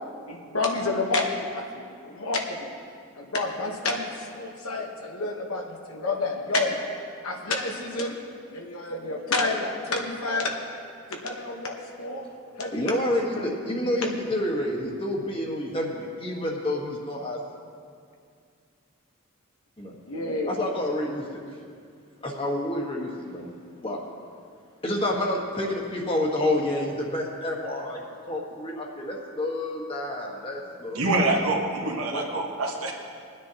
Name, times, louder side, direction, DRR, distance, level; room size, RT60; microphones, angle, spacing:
voice 1, 0.3-2.7 3.2-6.8 7.2-8.2 8.5-10.6 11.1-12.3 12.6-13.0 13.3-13.5 13.8-14.1 20.0-20.5, left 2 dB, 75° left, 1 dB, 1.2 m, -29 dB
voice 2, 12.7-17.4 19.8-19.9 20.5-21.2 22.2-23.5 23.8-24.0 24.8-31.4 32.1-32.2, left 1 dB, 25° left, -1 dB, 1.4 m, -29 dB
voice 3, 30.9-32.9, right 2 dB, 75° right, 0 dB, 1.3 m, -25 dB
21.0 x 9.7 x 2.9 m, 2.3 s
head